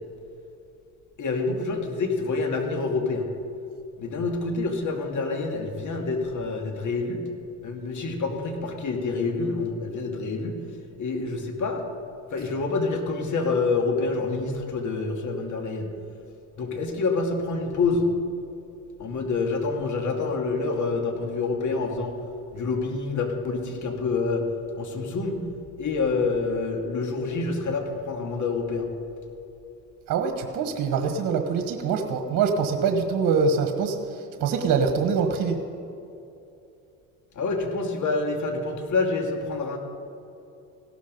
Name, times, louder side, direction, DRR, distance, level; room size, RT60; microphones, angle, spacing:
voice 1, 1.2-3.3 4.0-7.2 7.6-10.6 11.0-11.8 12.3-15.9 16.6-18.1 19.0-22.1 22.5-24.4 24.8-25.4 25.8-28.9 37.4-39.8, left 3 dB, 55° left, 3 dB, 2.5 m, -27 dB
voice 2, 30.1-34.0 34.4-35.6, right 5 dB, 60° right, 6 dB, 1.4 m, -24 dB
16.5 x 12.5 x 5.4 m, 2.8 s
supercardioid pair, 80°, 36 cm